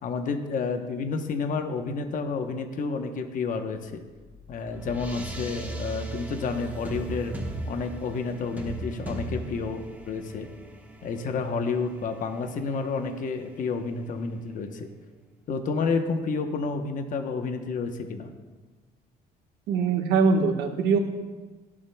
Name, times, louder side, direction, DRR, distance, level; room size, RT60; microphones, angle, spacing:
voice 1, 0.0-4.0 4.5-7.4 7.7-10.5 11.0-14.9 15.5-18.3, left 4 dB, 50° left, 5 dB, 0.9 m, -30 dB
sound 1, 4.1-14.5, right 2 dB, 10° right, 1.2 m, -39 dB
voice 2, 19.7-21.0, right 5 dB, 75° right, 3 dB, 1.3 m, -22 dB
21.0 x 7.4 x 2.3 m, 1.3 s
cardioid pair, 110°, 17 cm